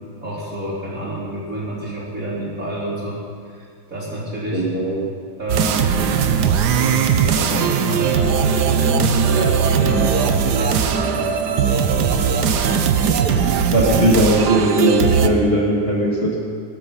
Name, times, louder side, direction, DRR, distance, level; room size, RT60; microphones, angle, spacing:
voice 1, 0.2-3.2 3.5-4.7 5.4-6.1 6.8-13.7 14.0-14.1, right 1 dB, 40° right, -5 dB, 4.2 m, -29 dB
voice 2, 4.5-5.1 13.7-16.4, equal, 30° left, -4 dB, 2.3 m, -18 dB
sound 1, 5.5-15.3, right 7 dB, 60° right, 1.3 m, -19 dB
18.5 x 13.0 x 5.7 m, 2.2 s
omnidirectional pair, 2.3 m